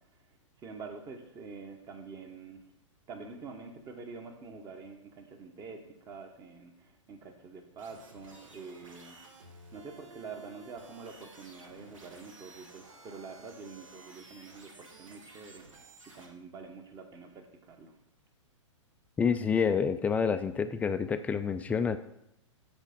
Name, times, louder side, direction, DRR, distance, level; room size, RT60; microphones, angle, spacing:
voice 1, 0.6-2.6 3.1-18.0, right 4 dB, 25° right, 5 dB, 1.0 m, -46 dB
sound 1, 7.8-16.2, right 3 dB, 85° right, 1.4 m, -54 dB
voice 2, 19.2-22.0, left 6 dB, 10° left, 10 dB, 0.3 m, -28 dB
7.4 x 4.2 x 5.2 m, 0.80 s
hypercardioid pair, 120°, 16 cm